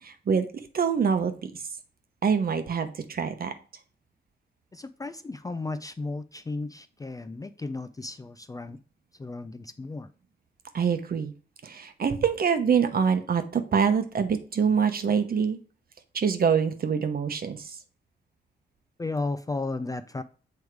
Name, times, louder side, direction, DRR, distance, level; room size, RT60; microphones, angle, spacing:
voice 1, 0.0-1.6 2.2-3.5 10.7-11.3 11.6-15.6 16.1-17.8, right 6 dB, 55° right, 8 dB, 0.9 m, -25 dB
voice 2, 4.7-8.8 9.1-10.1 19.0-20.2, left 3 dB, 20° left, 11 dB, 0.4 m, -34 dB
7.8 x 3.6 x 4.6 m, 0.39 s
wide cardioid pair, 135°, 19 cm